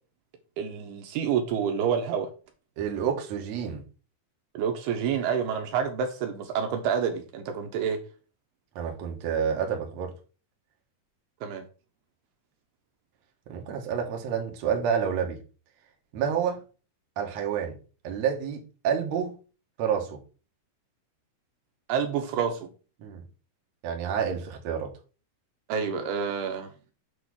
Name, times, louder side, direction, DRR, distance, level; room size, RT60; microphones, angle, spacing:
voice 1, 0.6-2.3 4.5-8.0 11.4-11.6 21.9-22.7 25.7-26.7, right 7 dB, 75° right, 2.9 m, -28 dB
voice 2, 2.8-3.8 8.8-10.1 13.5-15.4 16.1-16.6 17.2-17.8 18.0-19.4 19.8-20.2 23.0-23.2 23.8-24.9, right 7 dB, 60° right, 2.0 m, -29 dB
8.3 x 3.1 x 6.2 m
omnidirectional pair, 4.8 m